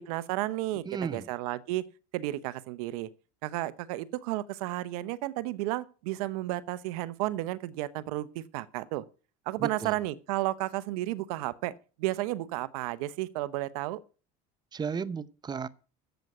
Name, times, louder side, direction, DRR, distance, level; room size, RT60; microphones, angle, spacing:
voice 1, 0.0-0.8 1.1-1.8 2.1-3.1 3.4-9.0 9.5-11.7 12.0-14.0, right 16 dB, 85° right, 0.9 m, -32 dB
voice 2, 0.8-1.3 9.6-9.9 14.7-15.7, right 6 dB, 25° right, 0.8 m, -34 dB
13.5 x 8.0 x 5.9 m
supercardioid pair, 105°, 18 cm